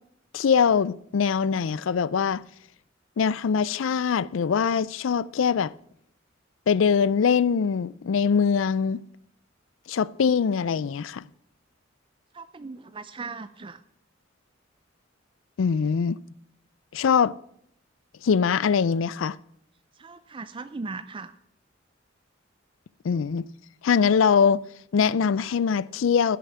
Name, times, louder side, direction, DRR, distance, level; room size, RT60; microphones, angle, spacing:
voice 1, 0.3-2.4 3.2-5.7 6.7-9.0 9.9-11.2 15.6-16.2 16.9-17.3 18.2-19.4 23.0-23.5 23.8-24.6 24.9-26.4, left 6 dB, 75° left, 0.4 m, -22 dB
voice 2, 12.3-13.8 20.0-21.3, right 4 dB, 25° right, 0.4 m, -38 dB
10.5 x 6.9 x 8.5 m
head